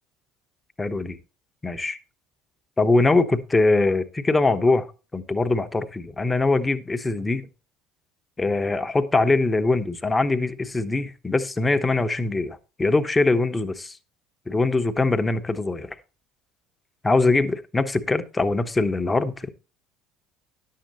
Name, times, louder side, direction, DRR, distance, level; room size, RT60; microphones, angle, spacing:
voice 1, 0.8-1.2 1.6-2.0 2.8-4.9 5.1-7.5 8.4-14.0 14.5-15.9 17.0-19.5, left 3 dB, 15° left, 1.0 m, -22 dB
11.0 x 7.7 x 4.1 m
figure-of-eight pair, 60°, 0 cm